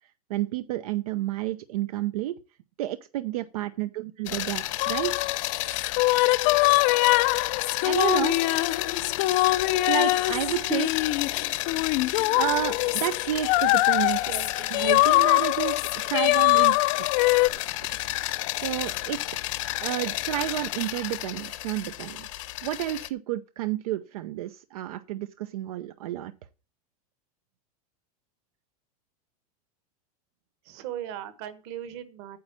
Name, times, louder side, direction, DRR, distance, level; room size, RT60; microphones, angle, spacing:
voice 1, 0.3-2.4 2.8-5.1 7.8-8.4 9.9-10.9 12.3-14.3 14.7-17.1 17.5-17.9 18.6-19.2 19.8-26.3, right 13 dB, 70° right, 0.7 m, -31 dB
sound 1, 4.3-23.1, left 17 dB, 55° left, 0.9 m, -32 dB
sound 2, 4.8-17.5, left 20 dB, 35° left, 0.5 m, -23 dB
voice 2, 14.2-15.2 30.6-32.4, right 11 dB, 45° right, 1.4 m, -39 dB
9.5 x 7.3 x 7.5 m
supercardioid pair, 175°, 20 cm